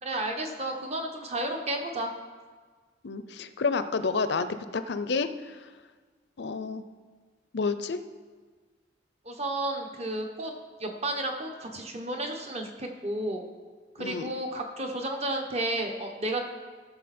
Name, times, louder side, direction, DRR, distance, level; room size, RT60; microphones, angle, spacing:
voice 1, 0.0-2.1 9.2-10.5 10.8-13.4 13.9-16.4, right 1 dB, 35° right, 3 dB, 1.2 m, -32 dB
voice 2, 3.0-5.6 6.4-6.8 7.5-8.0 14.0-14.3, left 4 dB, 65° left, 11 dB, 0.6 m, -30 dB
17.0 x 6.9 x 4.3 m, 1.5 s
head